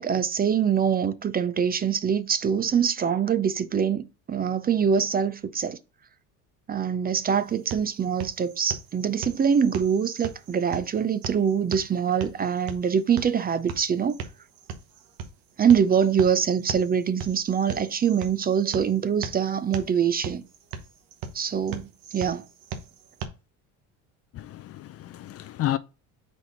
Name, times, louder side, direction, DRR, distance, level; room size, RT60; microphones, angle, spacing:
voice 1, 0.0-5.8 6.7-14.2 15.6-20.4 21.3-21.9 22.1-22.4, right 7 dB, 25° right, 0.5 m, -24 dB
sound 1, 7.3-23.3, right 6 dB, 65° right, 1.2 m, -40 dB
voice 2, 24.3-25.8, left 13 dB, 40° left, 0.5 m, -31 dB
4.6 x 4.1 x 5.3 m
supercardioid pair, 105°, 37 cm